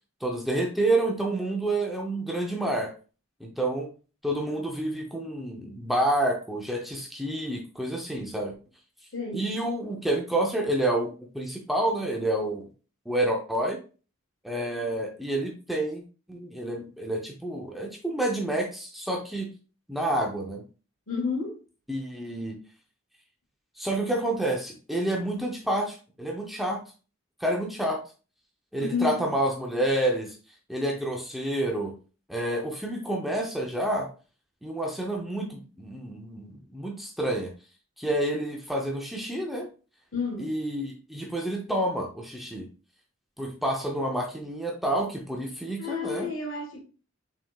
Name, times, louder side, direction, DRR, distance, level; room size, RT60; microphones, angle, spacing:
voice 1, 0.2-2.9 3.4-3.9 4.2-8.5 9.3-12.7 13.1-13.8 14.4-16.0 16.3-19.5 19.9-20.6 21.9-22.6 23.8-26.8 27.4-28.0 28.7-30.4 30.7-31.9 32.3-34.1 34.6-37.5 38.0-39.7 40.4-42.7 43.4-46.3, right 1 dB, ahead, 0.6 m, -29 dB
voice 2, 9.1-9.5 21.1-21.6 28.8-29.2 40.1-40.5 45.8-46.8, left 5 dB, 75° left, 1.6 m, -31 dB
5.9 x 3.5 x 2.3 m
head